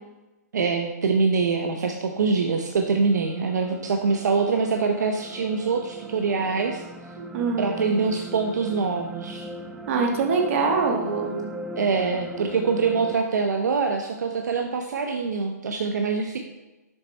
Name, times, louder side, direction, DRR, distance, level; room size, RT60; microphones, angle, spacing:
voice 1, 0.5-6.8 7.6-9.5 11.8-16.4, right 4 dB, 80° right, 3 dB, 0.6 m, -24 dB
sound 1, 1.5-13.1, right 1 dB, 5° right, 0.4 m, -40 dB
voice 2, 7.2-8.0 9.9-11.4, right 4 dB, 50° right, 2 dB, 1.3 m, -24 dB
6.9 x 4.1 x 4.2 m, 1.1 s
hypercardioid pair, 145°, 9 cm